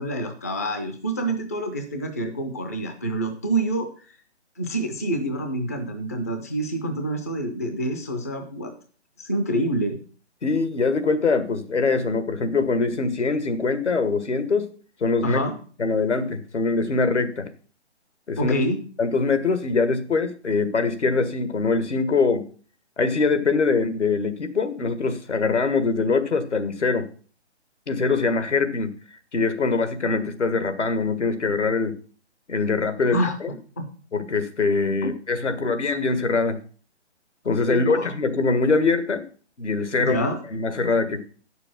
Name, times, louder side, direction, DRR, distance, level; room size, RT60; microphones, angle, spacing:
voice 1, 0.0-4.2 4.6-8.7 9.2-10.0 15.2-15.6 18.4-18.8 33.1-33.4 33.8-33.9 35.0-35.1 37.7-38.1 40.0-40.4, right 1 dB, 15° left, 6 dB, 0.4 m, -27 dB
voice 2, 10.4-14.7 15.0-15.4 15.8-17.5 18.3-18.5 19.0-22.4 23.0-27.1 27.9-28.9 29.3-32.0 32.5-33.5 34.1-36.6 37.5-39.2 39.6-40.2 40.5-41.2, left 4 dB, 85° left, 10 dB, 1.7 m, -23 dB
8.9 x 6.8 x 6.0 m, 0.41 s
figure-of-eight pair, 150°, 34 cm